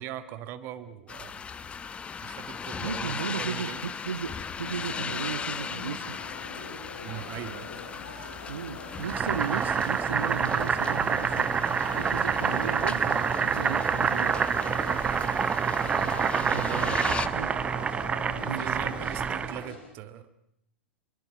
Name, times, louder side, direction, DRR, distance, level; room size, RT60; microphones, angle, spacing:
voice 1, 0.0-1.4 2.2-3.8 7.0-7.7 16.0-17.2 18.4-20.4, right 11 dB, 40° right, 11 dB, 1.8 m, -40 dB
sound 1, 1.1-17.3, left 6 dB, 20° left, 1.0 m, -38 dB
voice 2, 2.8-6.2 8.5-11.5 12.0-14.3 16.5-17.0 17.3-17.5 18.4-18.7, right 7 dB, 70° right, 11 dB, 1.2 m, -35 dB
sound 2, 4.6-19.8, left 3 dB, 60° left, 6.9 m, -43 dB
Boiling, 9.0-19.7, right 6 dB, 20° right, 1.0 m, -27 dB
26.5 x 23.0 x 6.1 m, 0.73 s
figure-of-eight pair, 95°, 6 cm